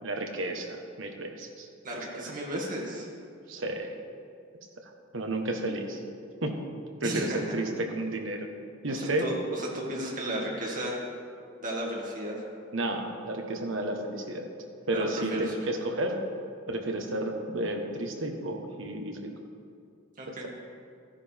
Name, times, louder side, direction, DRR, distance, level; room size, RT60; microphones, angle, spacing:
voice 1, 0.0-1.7 1.9-2.2 3.5-3.9 4.8-6.0 6.4-6.6 7.0-8.5 8.8-9.3 12.7-14.5 14.9-16.2 16.7-19.2 20.3-20.4, right 1 dB, 70° right, 3 dB, 1.2 m, -32 dB
voice 2, 1.8-3.1 7.0-7.4 8.9-11.0 11.6-12.4 14.9-15.1 15.3-15.4 20.2-20.5, right 1 dB, 40° right, -3 dB, 2.2 m, -34 dB
14.0 x 10.0 x 3.5 m, 2.4 s
head